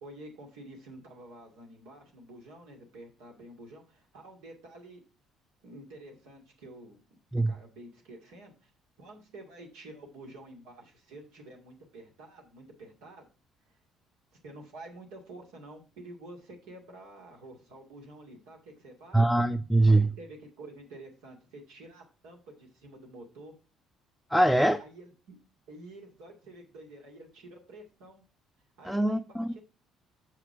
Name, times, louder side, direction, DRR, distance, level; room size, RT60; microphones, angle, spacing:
voice 1, 0.0-5.0 5.6-7.0 7.5-8.7 9.0-13.3 14.4-19.3 19.9-23.5 24.7-25.4 25.7-28.2 28.8-29.6, right 1 dB, 75° right, 2.2 m, -49 dB
voice 2, 19.1-20.1 24.3-24.8 28.8-29.5, right 1 dB, ahead, 0.5 m, -23 dB
6.9 x 5.9 x 4.6 m
hypercardioid pair, 55°, 0 cm